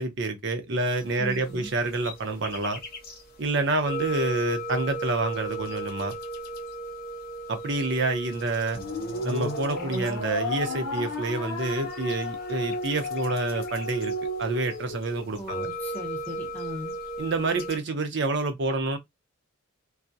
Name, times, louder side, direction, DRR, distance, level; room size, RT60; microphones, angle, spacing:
voice 1, 0.0-2.8 3.4-6.2 7.5-8.8 9.2-14.1 14.4-15.7 17.2-19.0, right 2 dB, 55° right, 0.6 m, -28 dB
sound 1, 0.9-17.8, right 1 dB, 45° left, 0.5 m, -38 dB
voice 2, 1.2-1.7 15.4-16.9, equal, 10° left, 0.8 m, -38 dB
sound 2, 8.7-15.3, left 1 dB, 85° left, 0.8 m, -33 dB
2.3 x 2.0 x 2.6 m
head